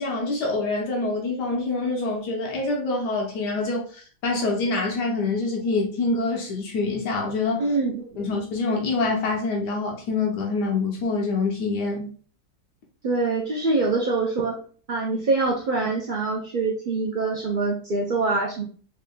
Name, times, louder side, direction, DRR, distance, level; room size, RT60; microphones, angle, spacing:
voice 1, 0.0-7.6 8.2-12.1, left 3 dB, 90° left, 1.4 m, -26 dB
voice 2, 7.6-8.3 13.0-14.6 14.9-18.6, right 3 dB, 90° right, 0.4 m, -24 dB
3.6 x 3.5 x 2.2 m
omnidirectional pair, 1.8 m